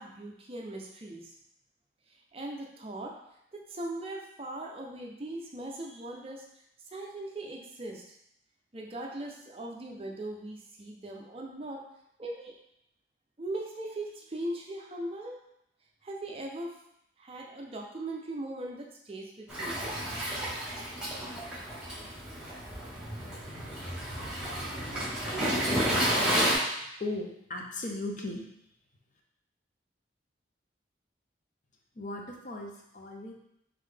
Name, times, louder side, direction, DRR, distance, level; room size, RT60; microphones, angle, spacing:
voice 1, 0.0-1.3 2.3-3.2 3.5-6.5 6.9-8.0 8.7-11.8 12.2-12.5 13.4-15.4 16.0-16.8 17.2-19.8, right 1 dB, 30° right, 0 dB, 0.5 m, -39 dB
Waves surf, 19.5-26.5, right 1 dB, 5° right, 0.9 m, -31 dB
voice 2, 27.0-28.5 32.0-33.3, left 2 dB, 40° left, 0 dB, 0.6 m, -37 dB
3.7 x 3.7 x 3.3 m, 0.78 s
head